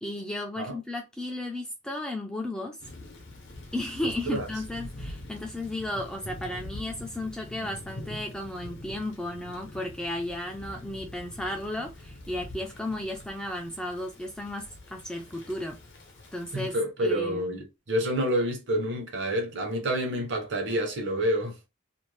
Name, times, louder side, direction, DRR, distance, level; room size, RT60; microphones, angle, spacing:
voice 1, 0.0-2.8 3.7-15.8 16.3-16.8 17.0-17.6, left 1 dB, 5° left, 0.4 m, -34 dB
Thunder / Rain, 2.8-16.7, left 1 dB, 55° left, 0.8 m, -44 dB
voice 2, 16.5-21.5, equal, 55° right, 0.8 m, -28 dB
2.6 x 2.1 x 3.1 m
head